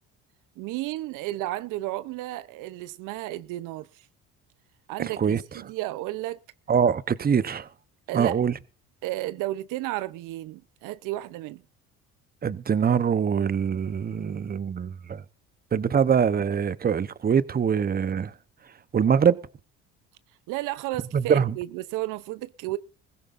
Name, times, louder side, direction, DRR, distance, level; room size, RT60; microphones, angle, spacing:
voice 1, 0.6-4.1 4.9-6.4 8.1-8.4 9.0-11.6 20.5-22.8, right 17 dB, 70° right, 0.8 m, -33 dB
voice 2, 5.0-5.4 6.7-7.7 8.1-8.5 12.4-15.2 15.7-18.3 18.9-19.4 21.1-21.5, right 7 dB, 30° right, 0.9 m, -23 dB
21.0 x 16.0 x 2.6 m
supercardioid pair, 80°, 33 cm